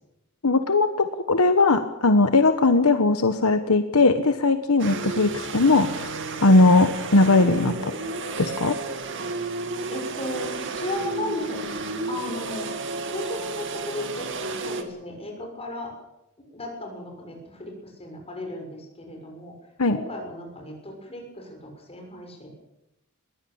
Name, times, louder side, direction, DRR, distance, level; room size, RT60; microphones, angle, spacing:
voice 1, 0.4-6.1 6.4-7.9 8.4-8.8 19.8-20.0, left 3 dB, 70° left, 9 dB, 1.2 m, -19 dB
sound 1, 4.8-14.8, right 3 dB, 60° right, 2.4 m, -32 dB
voice 2, 9.9-11.6 12.1-12.7 13.1-15.9 16.5-19.5 19.9-22.5, left 1 dB, 25° left, 2 dB, 6.8 m, -35 dB
21.5 x 16.0 x 8.8 m, 0.91 s
head